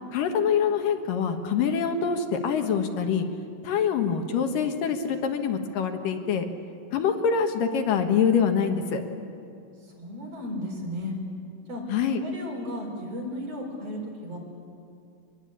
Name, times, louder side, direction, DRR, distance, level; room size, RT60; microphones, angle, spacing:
voice 1, 0.1-3.3 3.6-6.5 6.9-9.0 11.9-12.2, left 7 dB, 80° left, 6 dB, 3.0 m, -25 dB
voice 2, 10.0-11.2 11.7-11.8 12.1-14.4, left 1 dB, 45° right, -1 dB, 5.2 m, -34 dB
24.5 x 20.5 x 8.6 m, 2.5 s
omnidirectional pair, 3.9 m